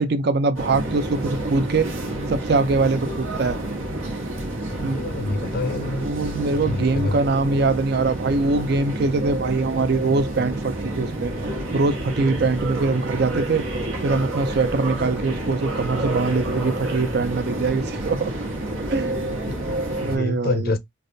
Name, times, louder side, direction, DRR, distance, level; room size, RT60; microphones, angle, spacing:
voice 1, 0.0-1.9 2.3-3.6 4.8-5.0 6.0-11.3 11.7-13.7 14.0-18.3 18.9-19.3 20.0-20.8, right 3 dB, 55° right, 0.4 m, -23 dB
sound 1, 0.5-20.2, right 1 dB, 85° right, 1.2 m, -29 dB
voice 2, 4.9-6.1 6.4-7.2 19.5-20.8, left 2 dB, 50° left, 0.5 m, -27 dB
3.3 x 2.3 x 2.6 m
head